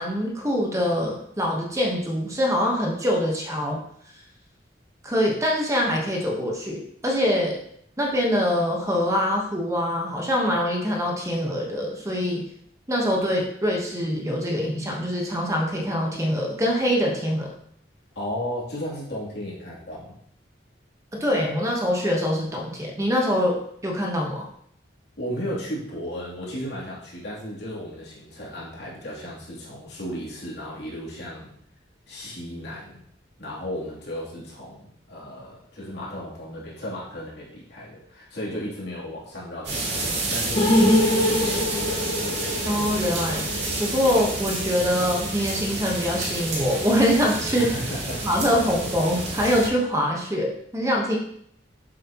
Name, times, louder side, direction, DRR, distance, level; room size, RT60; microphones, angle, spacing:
voice 1, 0.0-3.8 5.0-7.6 8.0-12.4 12.9-17.5 21.1-24.5 42.7-43.4 43.8-47.7 48.2-51.2, equal, 15° right, 0 dB, 1.2 m, -24 dB
voice 2, 18.1-20.2 25.2-31.5 32.1-33.0 33.4-41.4 47.6-48.3, equal, 65° left, -6 dB, 3.1 m, -35 dB
sound 1, 39.6-49.7, right 2 dB, 65° right, 2.6 m, -29 dB
sound 2, 40.5-44.7 44.9-45.0 45.4-45.5, left 1 dB, 25° left, 1.9 m, -24 dB
7.8 x 7.3 x 3.0 m, 0.67 s
head